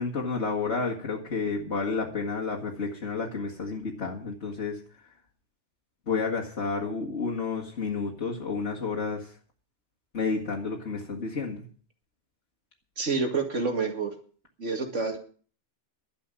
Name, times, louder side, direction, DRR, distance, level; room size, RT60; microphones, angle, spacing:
voice 1, 0.0-4.8 6.1-9.3 10.1-11.6, left 4 dB, 70° left, -3 dB, 2.2 m, -30 dB
voice 2, 13.0-14.1 14.6-15.2, right 4 dB, 85° right, 4 dB, 2.6 m, -28 dB
12.0 x 7.3 x 9.8 m, 0.43 s
omnidirectional pair, 1.2 m